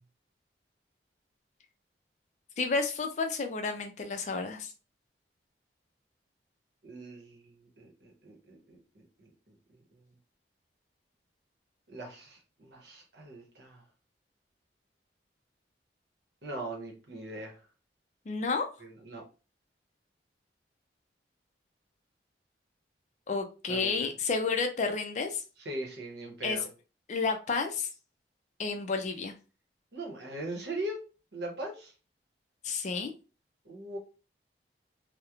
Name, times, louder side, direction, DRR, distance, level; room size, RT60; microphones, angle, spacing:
voice 1, 2.6-4.7 18.3-18.7 23.3-25.4 26.4-26.6 27.1-27.9 28.6-29.3 32.6-33.1, left 4 dB, 40° left, 6 dB, 0.3 m, -31 dB
voice 2, 6.8-9.5 11.9-13.8 16.4-17.6 18.8-19.2 23.7-24.1 25.6-26.7 29.9-31.0 31.3-31.9 33.6-34.0, right 1 dB, 70° right, 1 dB, 0.8 m, -41 dB
2.9 x 2.0 x 2.3 m, 0.33 s
head